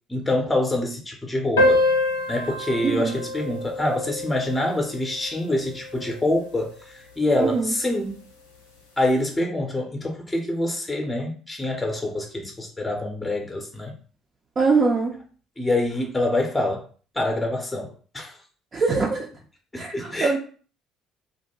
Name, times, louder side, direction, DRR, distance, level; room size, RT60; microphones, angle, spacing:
voice 1, 0.1-1.8 2.3-8.2 9.0-13.9 15.6-16.8 17.1-18.4 19.7-20.4, left 1 dB, 15° left, 2 dB, 0.6 m, -26 dB
sound 1, 1.6-6.5, left 1 dB, 85° left, 0.5 m, -26 dB
voice 2, 7.4-7.7 14.6-15.1 18.7-19.3 19.8-20.4, right 4 dB, 35° right, 0 dB, 0.5 m, -22 dB
2.4 x 2.1 x 2.9 m, 0.41 s
figure-of-eight pair, 55°, 0 cm